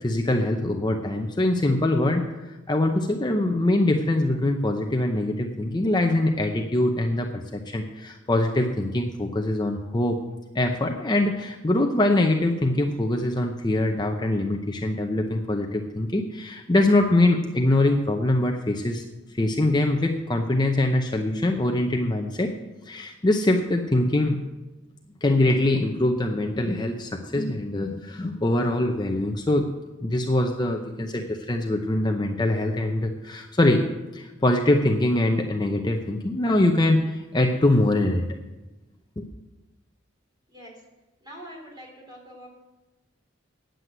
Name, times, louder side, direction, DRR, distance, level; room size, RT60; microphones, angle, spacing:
voice 1, 0.0-10.2 10.5-19.0 19.4-22.5 22.9-24.4 25.2-29.6 30.0-33.8 34.1-38.3 39.2-39.3, left 1 dB, 20° left, 3 dB, 0.7 m, -23 dB
voice 2, 41.2-42.5, equal, 20° right, -1 dB, 3.5 m, -44 dB
9.6 x 7.7 x 7.8 m, 1.1 s
head